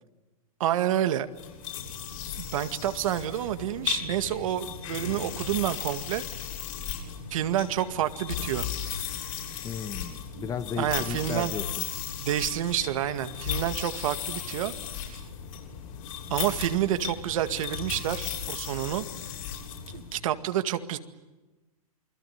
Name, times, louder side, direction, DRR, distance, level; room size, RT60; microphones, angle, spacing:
voice 1, 0.6-1.3 2.4-6.2 7.3-8.7 8.9-9.2 10.4-10.5 10.8-11.5 12.2-14.7 15.0-15.2 16.3-19.1 19.9-21.0, right 11 dB, 65° right, 10 dB, 2.1 m, -29 dB
sound 1, 1.3-20.2, left 9 dB, 65° left, 7.6 m, -36 dB
voice 2, 9.6-11.8, left 6 dB, 20° left, 11 dB, 1.4 m, -34 dB
28.5 x 21.5 x 9.5 m, 1.1 s
hypercardioid pair, 145°, 19 cm